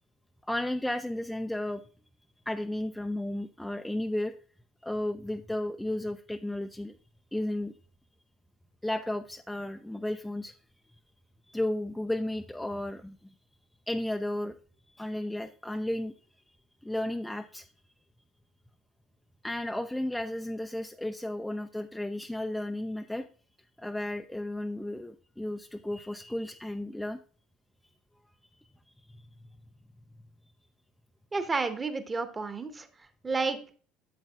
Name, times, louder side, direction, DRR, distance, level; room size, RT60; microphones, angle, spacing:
voice 1, 0.5-1.9 2.5-4.3 4.8-7.0 7.3-7.7 8.8-10.5 11.5-13.3 13.9-14.5 14.9-16.1 16.8-17.7 19.4-23.3 23.8-27.2 28.6-28.7, left 1 dB, 5° left, 7 dB, 0.4 m, -33 dB
voice 2, 31.3-33.7, right 4 dB, 25° right, 10 dB, 1.0 m, -31 dB
8.8 x 7.9 x 2.3 m, 0.40 s
figure-of-eight pair, 60°, 0 cm